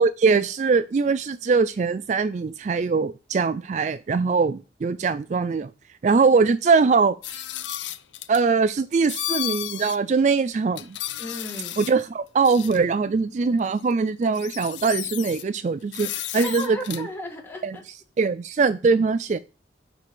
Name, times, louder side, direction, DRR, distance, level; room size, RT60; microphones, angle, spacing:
voice 1, 0.0-5.7 6.0-7.2 8.3-11.0 11.8-17.1 17.6-17.8 18.2-19.4, right 4 dB, 40° right, 0.3 m, -22 dB
sound 1, 7.2-8.4 9.1-10.0 10.3-10.4 10.8-12.0 12.4-12.8 13.8-13.9 14.2-15.4 15.9-17.0, left 13 dB, 90° left, 0.5 m, -33 dB
voice 2, 11.2-11.8 16.3-17.8, left 1 dB, 15° left, 1.8 m, -35 dB
9.6 x 4.1 x 6.2 m
head